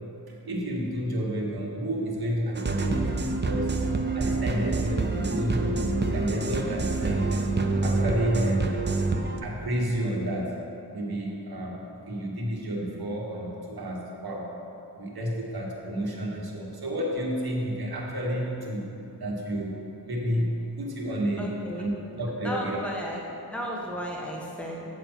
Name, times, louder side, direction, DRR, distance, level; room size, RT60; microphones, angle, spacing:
voice 1, 0.3-3.8 4.1-5.9 6.1-7.3 7.7-8.8 9.4-10.6 10.9-14.5 14.9-18.9 19.2-21.5 21.7-21.9 22.2-22.8, equal, 65° right, -3 dB, 1.6 m, -30 dB
sound 1, 2.5-9.4, right 3 dB, 25° right, 0.6 m, -27 dB
voice 2, 21.4-21.9 22.4-23.2 23.5-24.9, equal, 5° left, -2 dB, 1.2 m, -34 dB
8.6 x 7.2 x 4.4 m, 2.8 s
wide cardioid pair, 90°, 40 cm